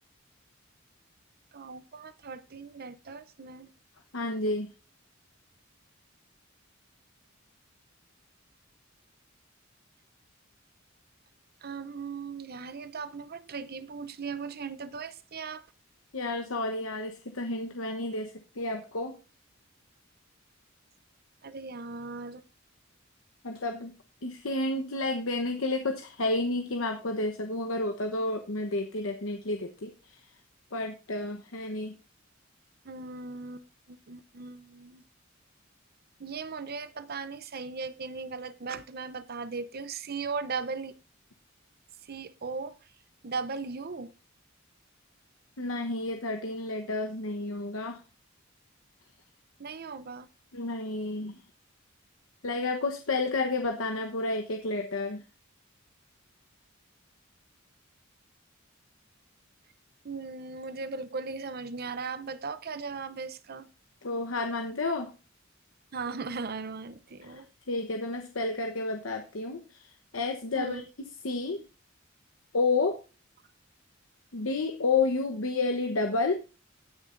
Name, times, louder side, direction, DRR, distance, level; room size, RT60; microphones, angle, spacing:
voice 1, 1.5-3.7 11.6-15.6 21.4-22.4 32.8-35.0 36.2-41.0 42.1-42.8 43.2-44.1 49.6-50.3 60.0-63.7 65.9-67.5 70.5-70.8, right 4 dB, 50° right, 0.7 m, -38 dB
voice 2, 4.1-4.7 16.1-19.1 23.4-23.9 24.2-30.2 30.7-31.9 45.6-48.0 50.5-51.3 52.4-55.2 64.0-65.1 67.2-70.8 71.2-71.6 72.5-73.0 74.3-76.3, left 3 dB, 80° left, 1.1 m, -31 dB
18.5 x 6.7 x 2.6 m
head